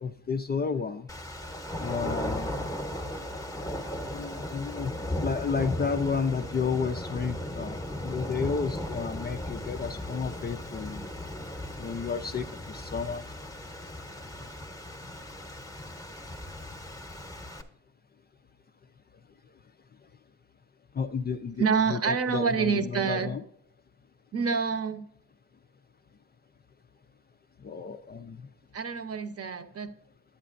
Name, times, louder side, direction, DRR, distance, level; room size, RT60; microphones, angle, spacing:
voice 1, 0.0-1.1 1.8-2.5 4.1-4.9 5.2-11.1 11.8-13.2 20.9-21.6 21.9-23.4 27.6-28.5, left 5 dB, 30° left, 7 dB, 0.4 m, -32 dB
sound 1, 1.1-17.6, left 1 dB, 10° left, 0.9 m, -36 dB
voice 2, 21.6-23.3 24.3-25.0 28.7-29.9, right 5 dB, 40° right, 7 dB, 0.8 m, -27 dB
10.0 x 8.3 x 2.5 m, 0.72 s
cardioid pair, 85°, 36 cm